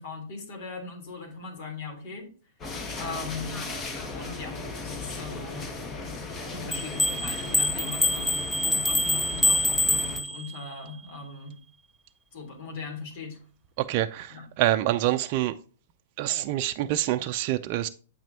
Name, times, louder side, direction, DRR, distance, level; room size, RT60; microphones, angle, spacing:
voice 1, 0.0-2.3 3.0-3.6 4.1-5.7 6.5-11.6 12.3-13.4 14.3-14.4, left 4 dB, 55° left, 3.4 m, -39 dB
sound 1, 2.6-10.2, left 3 dB, 25° left, 1.5 m, -37 dB
sound 2, 6.7-10.7, left 1 dB, ahead, 0.6 m, -25 dB
voice 2, 13.8-15.5 16.2-17.9, right 14 dB, 45° right, 0.5 m, -26 dB
8.2 x 6.0 x 2.8 m
hypercardioid pair, 120°, 0 cm